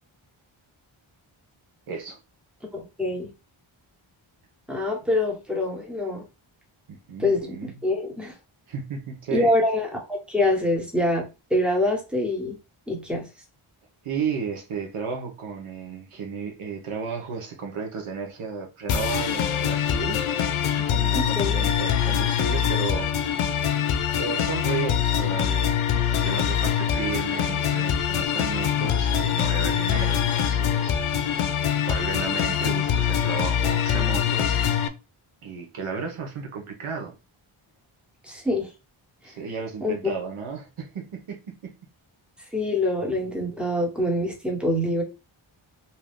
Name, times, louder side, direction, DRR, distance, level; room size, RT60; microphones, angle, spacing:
voice 1, 1.9-2.2 6.9-7.8 8.7-9.5 14.0-20.2 20.8-23.1 24.1-30.9 31.9-34.6 35.4-37.2 39.2-41.7, right 5 dB, 80° right, 2 dB, 1.0 m, -34 dB
voice 2, 2.7-3.3 4.7-6.2 7.2-8.3 9.3-11.2 11.5-12.6 12.9-13.3 21.1-21.6 38.2-38.7 39.8-40.1 42.5-45.0, left 1 dB, ahead, 0 dB, 1.1 m, -25 dB
sound 1, 18.9-34.9, left 9 dB, 80° left, 0.5 m, -24 dB
2.8 x 2.2 x 3.4 m, 0.28 s
wide cardioid pair, 70°, 49 cm